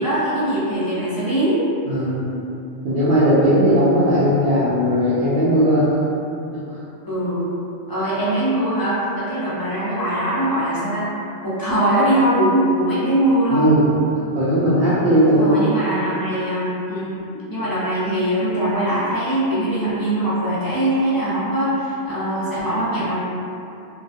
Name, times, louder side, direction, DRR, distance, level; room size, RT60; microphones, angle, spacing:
voice 1, 0.0-1.6 7.1-7.5 7.9-11.1 11.4-13.8 15.4-17.1 17.5-23.2, right 1 dB, 35° left, -11 dB, 0.3 m, -21 dB
voice 2, 1.9-2.3 2.8-5.9 6.5-6.6 13.5-13.9 14.3-16.0, equal, 65° right, -12 dB, 0.7 m, -17 dB
2.3 x 2.2 x 2.5 m, 2.7 s
omnidirectional pair, 1.2 m